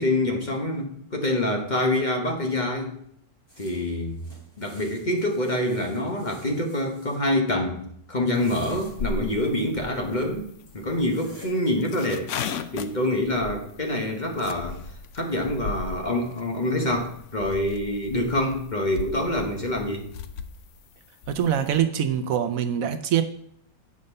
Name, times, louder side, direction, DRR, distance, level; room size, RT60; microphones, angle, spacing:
voice 1, 0.0-3.0 3.6-4.2 4.6-10.5 10.7-12.3 12.7-14.8 15.1-20.1, left 1 dB, 35° left, 2 dB, 1.1 m, -26 dB
sound 1, 3.5-7.2 8.2-9.0 10.1-10.2 10.7-10.8 11.1-11.5, equal, 15° left, 2.6 m, -50 dB
sound 2, 8.3-21.8, left 4 dB, 65° left, 0.9 m, -38 dB
voice 2, 21.3-23.2, right 9 dB, 70° right, 9 dB, 1.0 m, -24 dB
8.6 x 5.3 x 5.4 m, 0.69 s
omnidirectional pair, 1.6 m